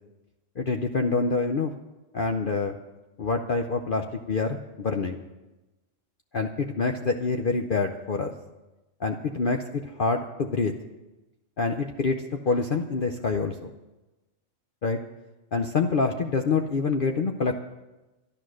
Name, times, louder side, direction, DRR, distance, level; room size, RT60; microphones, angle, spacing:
voice 1, 0.6-1.7 2.1-2.8 3.2-5.2 6.3-8.3 9.0-10.7 11.6-12.2 12.5-13.7 14.8-15.0 15.5-17.6, left 4 dB, 50° left, 4 dB, 0.8 m, -26 dB
12.0 x 11.5 x 6.3 m, 1.1 s
omnidirectional pair, 1.4 m